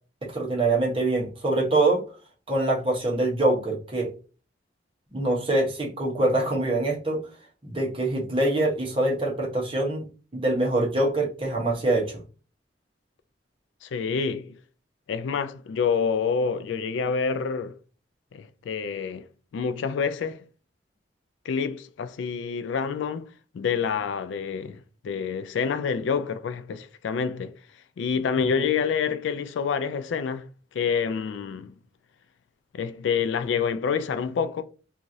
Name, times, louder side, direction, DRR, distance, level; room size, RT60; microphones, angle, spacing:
voice 1, 0.3-2.0 2.5-4.1 5.1-7.3 7.6-10.0 10.3-12.2 28.6-28.7, right 2 dB, 30° right, 0.9 m, -24 dB
voice 2, 13.8-14.6 15.1-17.8 18.3-19.3 19.5-20.4 21.5-24.8 25.0-27.5 28.0-30.5 30.7-31.7 32.7-34.6, left 6 dB, 75° left, 0.3 m, -27 dB
3.0 x 2.4 x 2.6 m
head